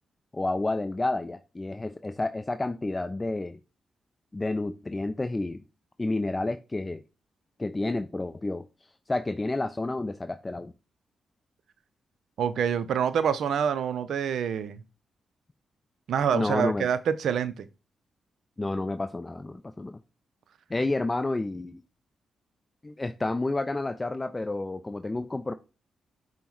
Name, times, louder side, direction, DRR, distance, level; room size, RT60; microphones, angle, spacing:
voice 1, 0.3-3.6 4.3-5.6 6.0-7.0 7.6-8.6 9.1-10.7 16.3-16.9 18.6-20.0 20.7-21.8 22.8-25.5, left 2 dB, 25° left, 0.3 m, -30 dB
voice 2, 12.4-14.8 16.1-17.7, right 8 dB, 75° right, 0.4 m, -26 dB
5.3 x 2.1 x 4.5 m
supercardioid pair, 50°, 0 cm